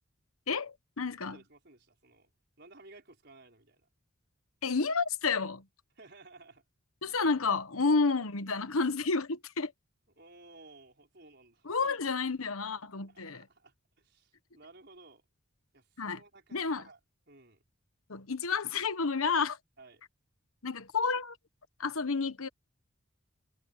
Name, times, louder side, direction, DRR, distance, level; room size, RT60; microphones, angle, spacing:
voice 1, 0.5-1.4 4.6-5.6 7.0-9.7 11.6-13.4 16.0-16.2 16.5-16.8 18.1-19.6 20.6-21.4 21.8-22.5, left 4 dB, 85° left, 1.2 m, -30 dB
voice 2, 1.2-2.3 2.6-3.9 6.0-6.6 10.2-11.7 12.1-12.2 13.1-15.2 15.7-17.0 17.3-17.6 19.8-20.0, right 2 dB, 50° right, 5.9 m, -56 dB
head